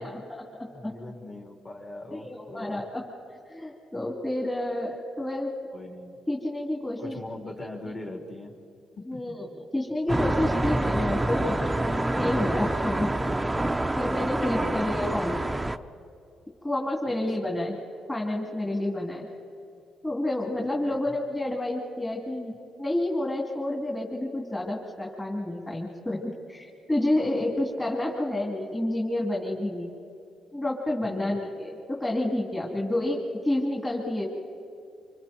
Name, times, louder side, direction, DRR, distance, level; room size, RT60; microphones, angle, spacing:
voice 1, 0.0-0.9 2.1-3.0 3.5-5.5 6.3-7.2 9.1-13.4 13.7-15.4 16.6-17.8 18.1-19.3 20.0-29.9 30.5-34.3, left 1 dB, 15° left, -2 dB, 3.2 m, -29 dB
voice 2, 0.7-2.8 5.7-6.2 7.0-8.5 9.0-9.4 14.5-14.7 17.0-17.1 17.4-17.5 20.6-21.1 31.0-31.3 32.7-32.9, left 2 dB, 35° left, 1 dB, 3.9 m, -41 dB
sound 1, 10.1-15.8, right 1 dB, 10° right, 0.7 m, -27 dB
26.0 x 26.0 x 4.5 m, 2.6 s
cardioid pair, 90°, 0 cm